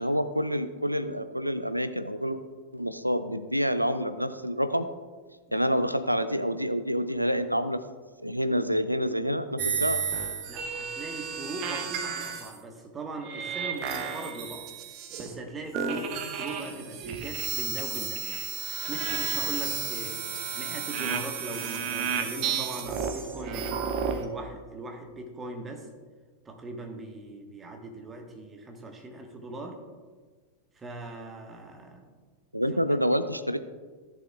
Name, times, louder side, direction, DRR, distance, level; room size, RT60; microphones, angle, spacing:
voice 1, 0.0-2.4 2.7-4.9 5.5-7.8 8.2-10.0 32.5-33.6, equal, 90° right, 11 dB, 0.4 m, -27 dB
sound 1, 9.6-12.6 13.2-15.5 15.7-24.2, right 7 dB, 40° right, 0.9 m, -32 dB
voice 2, 10.5-14.7 15.2-18.2 18.9-20.2 20.6-25.9 26.4-29.8 30.7-32.1, right 2 dB, 20° right, 3 dB, 1.3 m, -40 dB
14.5 x 7.0 x 2.3 m, 1.4 s
figure-of-eight pair, 90°, 0 cm